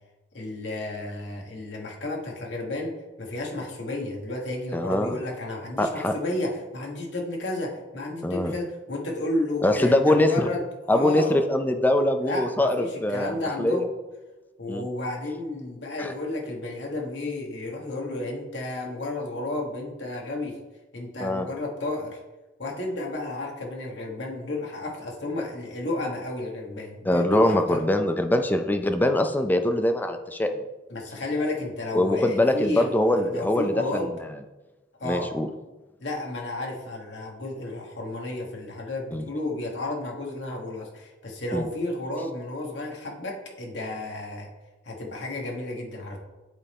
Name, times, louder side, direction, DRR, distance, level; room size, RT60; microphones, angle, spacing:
voice 1, 0.3-11.4 12.2-13.8 14.6-20.6 20.9-22.2 22.6-27.8 30.9-34.1 35.0-35.3 36.0-44.5 44.8-46.2, left 2 dB, 85° left, -1 dB, 1.4 m, -32 dB
voice 2, 4.7-5.2 5.8-6.2 8.2-8.5 9.6-10.5 10.9-13.9 14.7-14.9 16.0-16.1 21.2-21.5 27.1-30.6 31.9-34.0 35.0-35.5 39.1-39.2 41.5-41.7, left 1 dB, 10° left, 6 dB, 0.4 m, -23 dB
9.8 x 4.3 x 3.5 m, 1.1 s
head